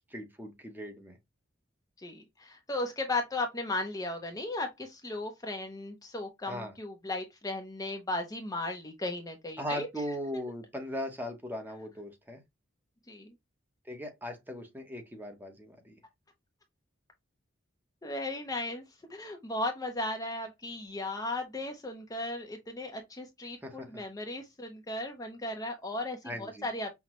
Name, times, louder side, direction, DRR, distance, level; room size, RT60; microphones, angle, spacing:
voice 1, 0.1-1.2 6.5-6.7 9.6-12.4 13.9-16.0 23.6-24.0 26.2-26.7, equal, 10° right, 0.9 m, -39 dB
voice 2, 2.0-9.9 13.1-13.3 18.0-18.8 19.1-26.9, left 2 dB, 20° left, 0.6 m, -36 dB
5.8 x 2.1 x 3.0 m
head